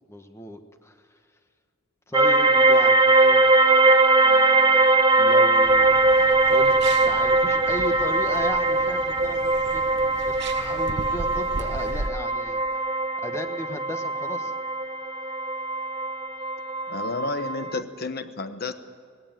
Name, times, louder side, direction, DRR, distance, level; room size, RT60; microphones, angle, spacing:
voice 1, 0.1-1.0 2.1-3.4 4.2-5.9 6.5-12.8 13.2-14.5, left 1 dB, 15° left, 7 dB, 1.2 m, -36 dB
sound 1, 2.1-17.8, right 2 dB, 20° right, 0.7 m, -21 dB
sound 2, 5.6-12.1, right 2 dB, 55° right, 0.8 m, -37 dB
voice 2, 16.9-18.7, left 3 dB, 50° left, 10 dB, 1.0 m, -31 dB
19.5 x 17.0 x 9.0 m, 2.1 s
head